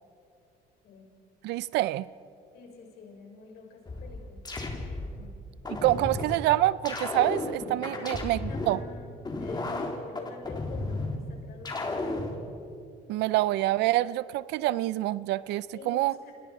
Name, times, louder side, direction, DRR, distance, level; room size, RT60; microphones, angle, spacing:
voice 1, 1.4-2.1 5.8-8.8 13.1-16.1, right 16 dB, 85° right, 0.6 m, -26 dB
voice 2, 2.5-4.4 5.2-5.4 7.9-9.1 9.4-12.2 15.7-16.3, left 5 dB, 70° left, 6.2 m, -47 dB
sound 1, 3.9-5.2 5.7-6.4 6.9-8.8 9.3-11.2 11.7-12.4, left 2 dB, 25° left, 3.4 m, -33 dB
29.5 x 27.0 x 5.0 m
cardioid pair, 110°, 17 cm